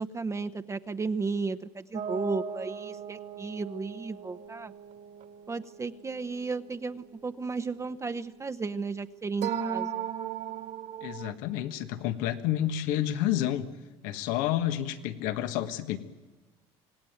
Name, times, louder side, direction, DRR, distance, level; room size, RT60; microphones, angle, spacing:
voice 1, 0.0-4.7 5.5-10.1, right 4 dB, 20° right, 8 dB, 0.8 m, -34 dB
sound 1, 1.9-7.4 9.4-11.3, right 7 dB, 60° right, 2.1 m, -37 dB
voice 2, 11.0-13.7 14.0-16.0, left 12 dB, 80° left, 9 dB, 1.5 m, -29 dB
26.0 x 18.0 x 9.4 m, 1.3 s
supercardioid pair, 100°, 14 cm